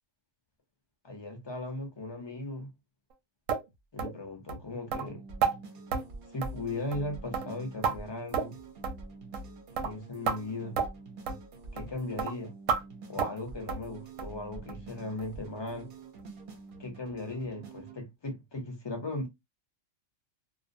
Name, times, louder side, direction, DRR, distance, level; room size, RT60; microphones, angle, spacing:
voice 1, 1.0-2.7 3.9-5.2 6.3-8.5 9.8-10.8 11.7-12.5 13.1-15.9 16.8-19.3, left 2 dB, 35° left, 0.4 m, -37 dB
sound 1, 3.5-3.6 4.0-4.2 4.5-4.6 4.9-5.1 5.4-5.6 5.9-6.1 6.4-6.7 6.9-7.1 7.3-8.0 8.3-8.6 8.8-9.0 9.3-9.5 9.8-9.9 10.3-10.4 10.8-10.9 11.3-11.4 11.8-11.9 12.2-12.3 12.7-12.8 13.2-13.4 13.7-13.9 14.2-14.4 14.7-14.8 15.2-15.3 15.7-15.8, right 6 dB, 90° right, 1.0 m, -30 dB
sound 2, 5.1-18.0, right 4 dB, 55° right, 0.6 m, -48 dB
2.5 x 2.0 x 2.5 m
omnidirectional pair, 1.3 m